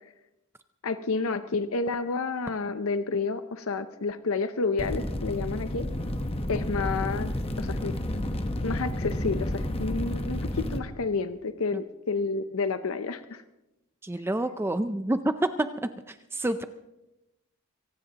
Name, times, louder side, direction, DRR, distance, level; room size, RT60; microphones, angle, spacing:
voice 1, 0.8-5.8 6.5-7.3 7.6-7.9 8.6-13.4, left 4 dB, 75° left, 10 dB, 0.7 m, -30 dB
sound 1, 4.8-10.8, left 1 dB, 25° left, 1.1 m, -31 dB
voice 2, 14.0-16.6, right 1 dB, 10° right, 10 dB, 0.5 m, -28 dB
24.0 x 18.0 x 2.9 m, 0.96 s
head